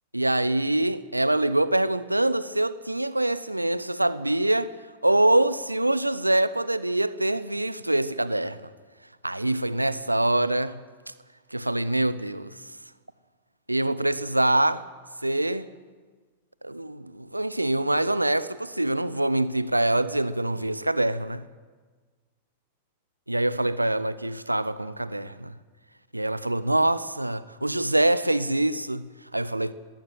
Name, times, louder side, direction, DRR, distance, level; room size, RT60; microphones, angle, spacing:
voice 1, 0.1-4.7 5.0-8.7 9.2-10.8 11.5-12.6 13.7-14.9 15.2-15.7 16.6-21.5 23.3-25.5 26.1-29.7, right 1 dB, 85° right, 0.7 m, -25 dB
19.5 x 16.0 x 9.1 m
figure-of-eight pair, 90°, 0 cm